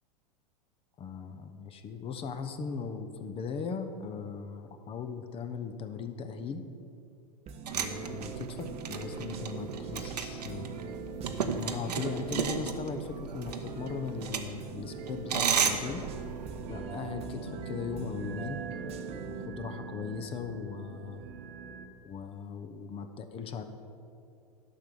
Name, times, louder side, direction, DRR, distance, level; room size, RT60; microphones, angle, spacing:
voice 1, 1.0-6.6 7.7-10.9 11.6-16.0 16.7-18.6 19.2-21.3 22.0-23.6, left 5 dB, 25° left, 9 dB, 0.8 m, -38 dB
sound 1, 7.5-12.8 13.5-19.5, right 5 dB, 30° right, 1.0 m, -44 dB
sound 2, 7.7-21.9, right 5 dB, 50° right, 1.2 m, -43 dB
sound 3, 7.7-16.7, right 7 dB, 75° right, 0.9 m, -34 dB
11.5 x 6.0 x 7.0 m, 2.6 s
hypercardioid pair, 95°, 21 cm